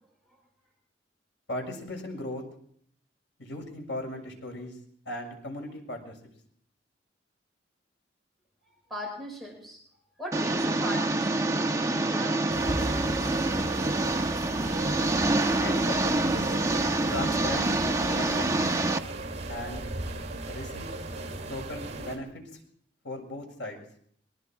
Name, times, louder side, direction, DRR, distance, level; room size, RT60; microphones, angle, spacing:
voice 1, 1.5-2.4 3.4-4.7 5.0-6.2 15.4-16.5 17.1-17.7 18.0-18.6 19.5-19.9 20.5-20.9 21.5-22.4 23.0-23.8, left 1 dB, 85° left, 3 dB, 6.9 m, -37 dB
voice 2, 8.7-9.8 10.2-14.0, equal, ahead, 0 dB, 5.9 m, -40 dB
Engine, 10.3-19.0, right 2 dB, 20° right, 1.2 m, -26 dB
sound 1, 12.5-22.2, right 2 dB, 40° right, 5.6 m, -36 dB
24.5 x 23.5 x 4.7 m, 0.63 s
head